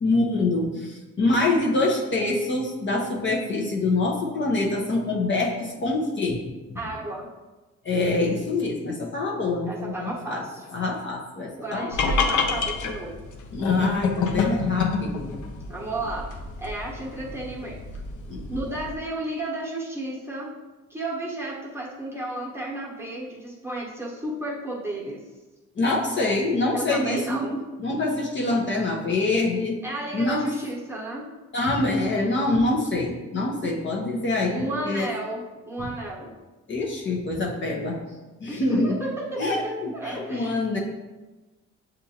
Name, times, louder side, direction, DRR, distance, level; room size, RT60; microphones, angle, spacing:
voice 1, 0.0-6.4 6.7-6.8 7.8-10.4 10.7-11.9 13.5-15.4 18.3-18.6 25.8-27.5 27.8-29.8 30.1-30.5 31.5-35.1 36.7-38.0 38.4-39.0 39.4-40.8, left 2 dB, 40° left, -2 dB, 0.8 m, -25 dB
voice 2, 6.7-7.3 9.7-10.6 11.6-13.2 15.7-16.3 16.6-17.8 18.5-20.5 20.9-25.2 26.7-27.6 29.8-31.3 34.5-36.3 38.5-40.6, right 1 dB, 10° right, -5 dB, 1.1 m, -33 dB
sound 1, 11.9-18.9, left 4 dB, 75° left, 0.6 m, -28 dB
6.8 x 2.6 x 2.8 m, 1.1 s
cardioid pair, 90°, 30 cm